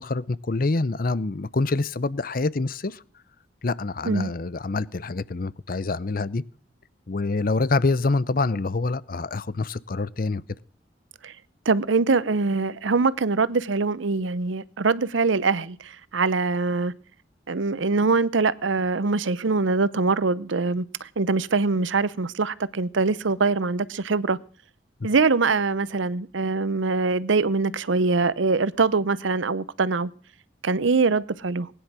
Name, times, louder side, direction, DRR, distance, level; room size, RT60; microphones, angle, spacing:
voice 1, 0.0-3.0 3.6-6.4 7.1-10.4, left 3 dB, 50° left, 0.6 m, -26 dB
voice 2, 11.7-16.9 17.5-24.4 25.0-30.1 30.6-31.7, right 4 dB, 90° right, 0.7 m, -23 dB
19.5 x 10.5 x 6.2 m
head